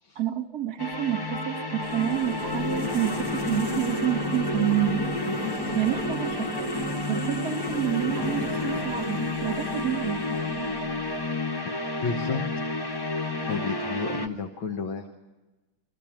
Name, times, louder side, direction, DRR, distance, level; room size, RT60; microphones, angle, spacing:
voice 1, 0.1-5.0 5.7-6.6 7.1-10.2, right 12 dB, 55° right, 5 dB, 1.5 m, -28 dB
sound 1, 0.8-14.3, left 1 dB, 20° left, 0.6 m, -31 dB
sound 2, 1.8-11.2, left 3 dB, 50° left, 3.0 m, -33 dB
voice 2, 12.0-12.4 13.5-15.1, left 5 dB, 70° left, 3 dB, 2.0 m, -31 dB
24.5 x 15.5 x 8.8 m, 1.1 s
omnidirectional pair, 2.3 m